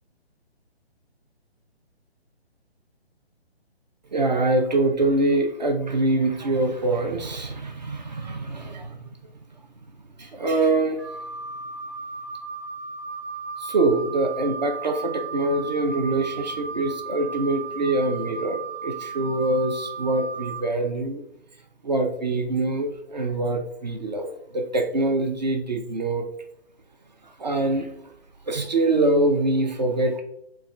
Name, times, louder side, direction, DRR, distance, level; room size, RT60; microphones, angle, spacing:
voice 1, 4.1-9.0 10.2-11.0 13.6-21.2 21.8-26.3 27.2-28.1 28.5-30.2, right 2 dB, 45° right, 5 dB, 0.4 m, -24 dB
Wind instrument woodwind instrument, 11.0-20.6, right 5 dB, 25° right, 1.1 m, -35 dB
5.5 x 2.2 x 2.4 m, 0.74 s
figure-of-eight pair, 140°, 32 cm